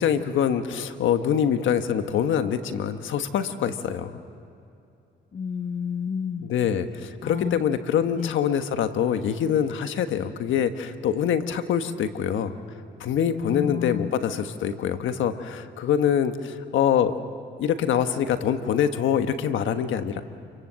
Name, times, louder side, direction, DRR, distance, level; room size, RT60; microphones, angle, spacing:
voice 1, 0.0-4.2 6.4-12.5 13.0-17.1 17.6-20.2, left 8 dB, 75° left, 9 dB, 1.4 m, -24 dB
voice 2, 5.3-6.5 7.2-7.6 8.2-8.4 13.5-14.1, left 7 dB, 40° left, 11 dB, 0.9 m, -30 dB
28.5 x 23.0 x 7.6 m, 2.7 s
cardioid pair, 90°, 20 cm